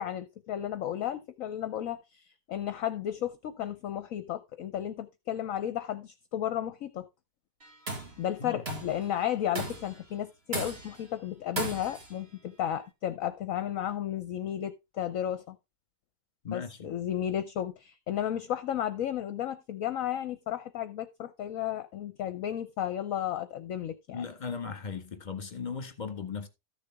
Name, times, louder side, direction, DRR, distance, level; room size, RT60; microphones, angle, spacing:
voice 1, 0.0-7.1 8.2-15.6 16.5-24.2, left 11 dB, 65° left, 1.0 m, -33 dB
Tools, 7.6-8.2 8.7-9.0 9.6-10.0 10.5-11.0 11.6-12.1, right 2 dB, 40° right, 2.1 m, -36 dB
voice 2, 8.4-8.8 16.4-16.9 24.1-26.5, left 6 dB, 30° left, 1.7 m, -37 dB
13.5 x 6.7 x 3.4 m
omnidirectional pair, 1.7 m